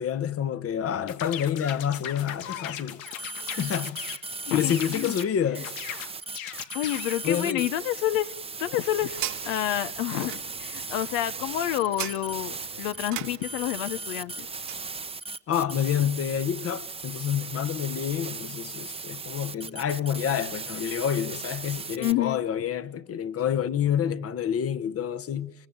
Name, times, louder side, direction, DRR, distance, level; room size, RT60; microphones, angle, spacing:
voice 1, 0.0-3.0 3.6-4.0 4.5-5.7 7.2-7.6 15.5-25.5, left 9 dB, 35° left, 1.1 m, -28 dB
sound 1, 1.1-4.2 4.7-5.3 5.6-7.2, left 10 dB, 90° left, 1.7 m, -38 dB
sound 2, 3.1-5.2 5.5-22.1, right 4 dB, 15° right, 0.9 m, -37 dB
voice 2, 4.5-5.2 6.7-8.3 8.6-14.5 22.0-22.5, left 14 dB, 70° left, 1.0 m, -29 dB
sound 3, 8.3-14.9, right 13 dB, 50° right, 1.3 m, -41 dB
24.0 x 23.0 x 9.0 m
supercardioid pair, 95°, 39 cm